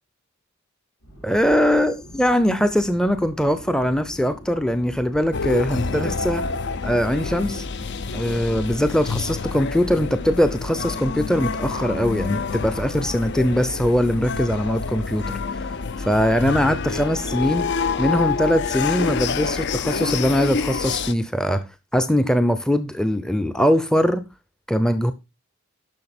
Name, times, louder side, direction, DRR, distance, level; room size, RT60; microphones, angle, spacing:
sound 1, 1.0-16.7, equal, 85° left, 4.9 m, -43 dB
voice 1, 1.2-6.4 6.8-7.6 8.1-15.3 16.0-17.7 18.0-21.6 21.9-24.2 24.7-25.1, equal, 5° left, 0.6 m, -21 dB
sound 2, 5.3-21.1, left 5 dB, 55° left, 0.5 m, -27 dB
11.0 x 6.3 x 4.2 m
head